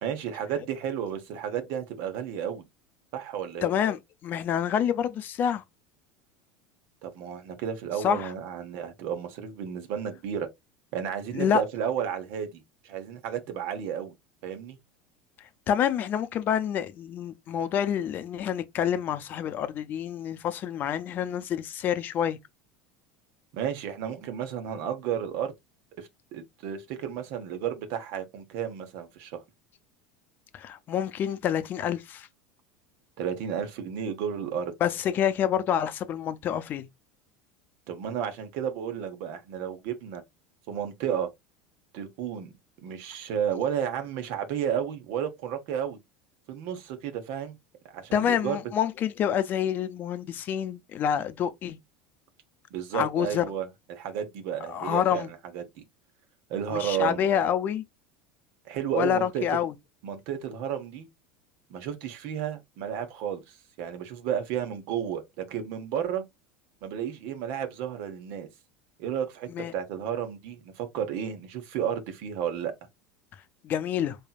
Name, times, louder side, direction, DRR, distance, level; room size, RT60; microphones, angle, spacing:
voice 1, 0.0-2.6 3.1-3.7 7.0-10.5 10.9-14.1 14.4-14.8 23.5-25.5 26.0-29.4 33.2-34.7 37.9-40.2 40.7-41.3 41.9-42.5 42.8-46.0 46.5-47.6 47.9-48.6 52.7-55.6 56.5-57.2 58.6-59.6 60.0-61.1 61.7-66.2 66.8-68.5 69.0-72.7, right 8 dB, 60° right, 1.2 m, -32 dB
voice 2, 3.6-5.6 8.0-8.3 11.3-11.6 15.7-22.4 30.5-32.3 34.8-36.9 48.1-51.8 52.9-53.4 54.7-55.3 56.7-57.8 58.9-59.7 69.5-69.7 73.6-74.2, left 9 dB, 45° left, 0.7 m, -27 dB
4.4 x 3.4 x 2.5 m
hypercardioid pair, 80°, 5 cm